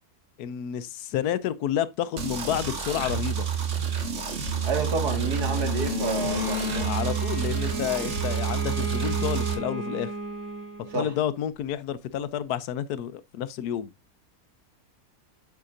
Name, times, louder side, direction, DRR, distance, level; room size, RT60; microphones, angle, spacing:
voice 1, 0.4-3.5 6.8-10.1 10.9-13.9, left 10 dB, 80° left, 1.2 m, -30 dB
sound 1, 2.2-9.5, right 8 dB, 50° right, 1.6 m, -29 dB
Bowed string instrument, 3.4-7.3, left 7 dB, 40° left, 0.9 m, -34 dB
voice 2, 4.6-6.9 10.9-11.1, right 4 dB, 80° right, 2.4 m, -30 dB
Bowed string instrument 2, 6.0-11.1, right 3 dB, 10° left, 2.0 m, -34 dB
8.3 x 6.8 x 2.5 m
omnidirectional pair, 1.7 m